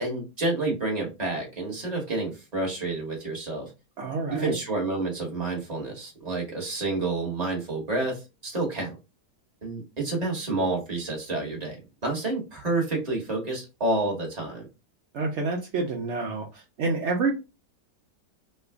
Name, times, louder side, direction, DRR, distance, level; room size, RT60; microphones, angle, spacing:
voice 1, 0.0-3.7 4.3-8.9 9.6-14.7, right 2 dB, 25° right, -1 dB, 1.2 m, -29 dB
voice 2, 4.0-4.5 15.1-17.3, right 3 dB, 65° right, 1 dB, 0.7 m, -28 dB
3.3 x 2.3 x 3.5 m, 0.27 s
omnidirectional pair, 1.9 m